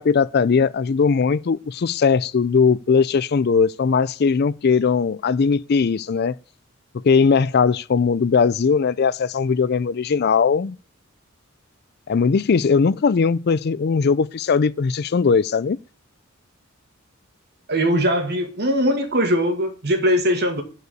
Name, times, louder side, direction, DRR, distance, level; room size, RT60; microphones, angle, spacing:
voice 1, 0.0-6.4 7.0-10.8 12.1-15.8, left 5 dB, 50° left, 0.4 m, -19 dB
voice 2, 17.7-20.6, equal, 50° right, 2.0 m, -20 dB
9.6 x 4.8 x 7.8 m
head